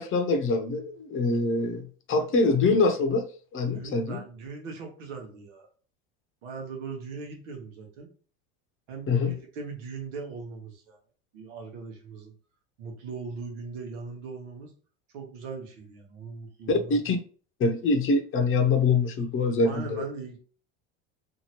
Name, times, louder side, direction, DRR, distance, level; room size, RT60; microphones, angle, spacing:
voice 1, 0.0-1.8 2.1-3.2 3.5-4.2 9.1-9.3 16.7-17.2 17.6-20.1, left 3 dB, 35° left, 5 dB, 0.7 m, -24 dB
voice 2, 3.7-5.7 6.4-8.1 8.9-11.0 11.3-12.3 12.8-14.7 15.1-17.0 19.6-20.4, right 4 dB, 85° right, 1 dB, 1.2 m, -39 dB
2.9 x 2.6 x 2.9 m, 0.40 s
supercardioid pair, 100°, 36 cm